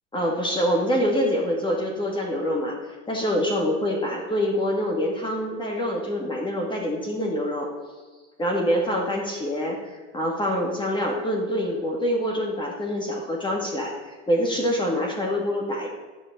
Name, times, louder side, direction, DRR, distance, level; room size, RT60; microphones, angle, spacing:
voice 1, 0.1-2.8 3.1-7.7 8.4-15.9, equal, 15° left, 0 dB, 2.1 m, -25 dB
11.5 x 5.2 x 8.5 m, 1.3 s
supercardioid pair, 125°, 35 cm